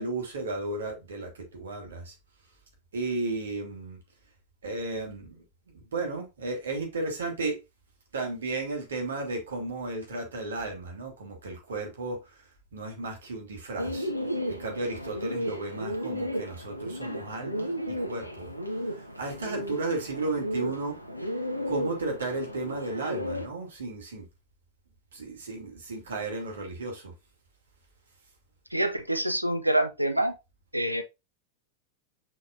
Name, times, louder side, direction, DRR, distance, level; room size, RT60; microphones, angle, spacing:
voice 1, 0.0-2.1 2.9-4.0 4.6-5.4 5.7-7.6 8.1-12.4 12.7-14.1 14.5-18.5 18.9-21.0 21.7-24.2 25.1-27.1, right 3 dB, 65° right, 2.9 m, -34 dB
Bird, 13.8-23.5, equal, 90° left, 1.2 m, -34 dB
voice 2, 28.7-30.3 30.7-31.0, right 1 dB, 90° right, 0.9 m, -26 dB
6.7 x 5.5 x 2.7 m
figure-of-eight pair, 90°, 0 cm